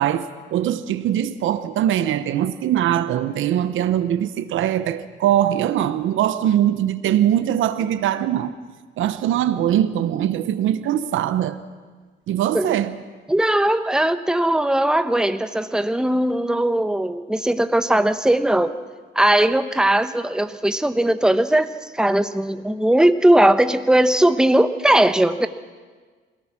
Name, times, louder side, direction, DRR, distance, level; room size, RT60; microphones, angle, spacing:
voice 1, 0.0-8.5 9.0-11.6 12.3-13.0, right 11 dB, 80° right, 1.0 m, -21 dB
voice 2, 13.3-18.7 19.1-25.5, right 1 dB, 5° right, 1.1 m, -19 dB
27.0 x 17.5 x 6.0 m
cardioid pair, 90°, 20 cm